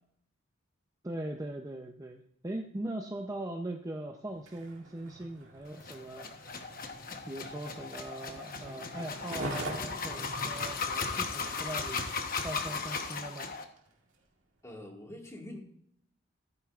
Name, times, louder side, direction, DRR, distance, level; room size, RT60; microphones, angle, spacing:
voice 1, 1.0-6.8 7.3-12.1 12.4-13.5, right 1 dB, 15° right, 3 dB, 0.6 m, -40 dB
Skateboard, 4.3-13.2 13.8-13.9, right 1 dB, 75° right, 2.0 m, -45 dB
sound 1, 5.8-13.6, left 5 dB, 45° left, 1.0 m, -37 dB
voice 2, 14.6-15.6, left 1 dB, 15° left, 0 dB, 1.9 m, -45 dB
14.0 x 9.3 x 2.4 m, 0.68 s
head